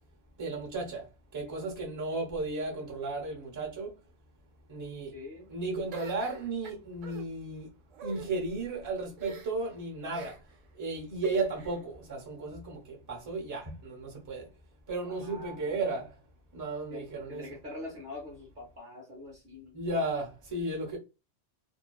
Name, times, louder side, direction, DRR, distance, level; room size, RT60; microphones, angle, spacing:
voice 1, 0.4-1.0 1.3-3.9 4.7-5.1 5.5-7.7 8.0-10.3 10.7-14.5 14.9-16.1 16.5-17.6 19.7-21.0, right 2 dB, 20° right, 0.6 m, -34 dB
voice 2, 5.1-5.5 15.0-15.8 16.9-19.8, left 2 dB, 45° right, 0.8 m, -44 dB
sound 1, 5.9-7.2 7.9-8.3 9.2-9.7 10.1-10.6 11.2-11.8, right 7 dB, 80° right, 1.1 m, -45 dB
2.5 x 2.3 x 2.3 m
omnidirectional pair, 1.3 m